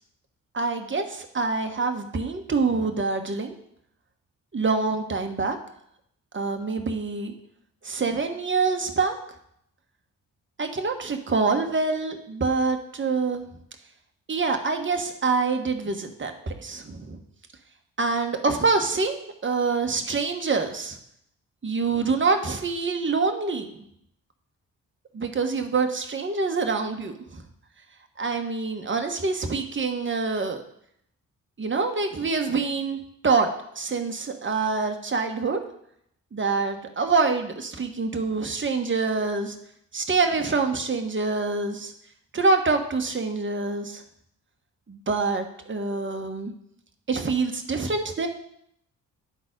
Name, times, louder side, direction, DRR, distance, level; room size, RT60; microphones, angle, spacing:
voice 1, 0.5-3.5 4.5-5.6 6.3-7.3 7.8-9.2 10.6-13.4 14.3-17.2 18.0-21.0 21.6-23.7 25.1-27.4 28.2-30.6 31.6-33.0 33.2-33.5 33.7-35.6 36.3-39.5 39.9-41.9 42.3-44.0 44.9-46.5 47.1-48.3, right 4 dB, 30° right, 5 dB, 1.3 m, -26 dB
10.0 x 4.0 x 5.2 m, 0.72 s
hypercardioid pair, 45°, 40 cm